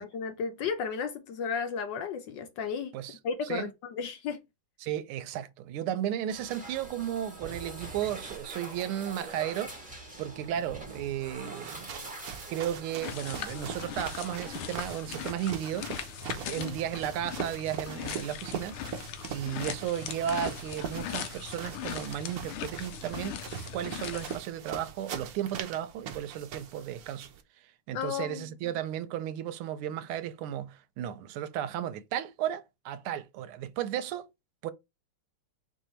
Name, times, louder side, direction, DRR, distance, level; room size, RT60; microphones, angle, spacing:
voice 1, 0.0-3.0 3.2-4.4 16.6-16.8 27.9-28.7, left 6 dB, 70° left, 1.2 m, -34 dB
voice 2, 4.8-9.7 10.2-11.9 12.5-15.9 16.4-18.8 19.3-23.4 23.7-27.3 27.9-34.3 34.6-34.7, right 10 dB, 85° right, 1.5 m, -34 dB
sound 1, 6.3-14.9, right 2 dB, 5° right, 1.0 m, -44 dB
sound 2, 11.4-27.4, right 7 dB, 65° right, 0.9 m, -42 dB
sound 3, 13.0-24.4, left 9 dB, 85° left, 1.5 m, -40 dB
4.6 x 2.7 x 4.3 m
omnidirectional pair, 2.3 m